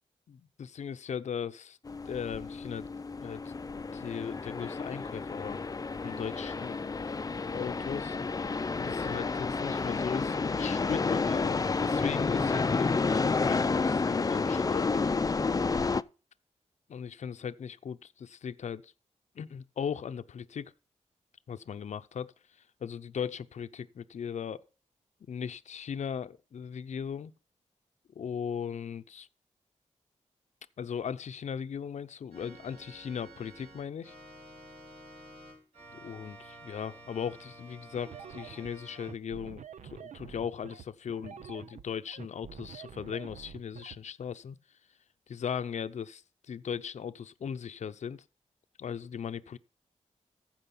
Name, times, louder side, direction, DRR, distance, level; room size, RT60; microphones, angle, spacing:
voice 1, 0.3-1.8 2.1-2.9 3.2-3.5 3.9-5.6 6.0-7.0 7.5-8.2 8.8-15.1 16.9-18.9 19.4-20.7 21.5-22.3 22.8-24.6 25.3-27.3 28.2-29.3 30.8-34.1 35.9-44.6 45.3-48.2 48.8-49.6, left 7 dB, 70° left, 0.7 m, -38 dB
sound 1, 1.8-16.0, left 4 dB, 30° left, 0.5 m, -30 dB
Organ, 32.3-39.1, right 1 dB, 60° right, 7.1 m, -51 dB
sound 2, 38.0-44.0, right 8 dB, 85° right, 0.7 m, -47 dB
14.5 x 5.2 x 5.5 m
cardioid pair, 80°, 12 cm